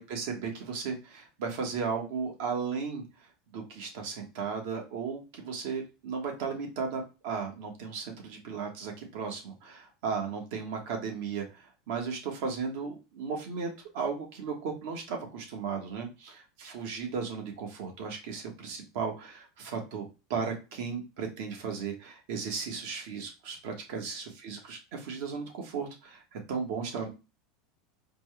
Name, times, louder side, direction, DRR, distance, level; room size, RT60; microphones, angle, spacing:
voice 1, 0.0-3.0 3.5-20.0 20.3-27.1, right 5 dB, 70° right, 2 dB, 1.3 m, -35 dB
4.2 x 2.2 x 3.3 m, 0.29 s
supercardioid pair, 135°, 0 cm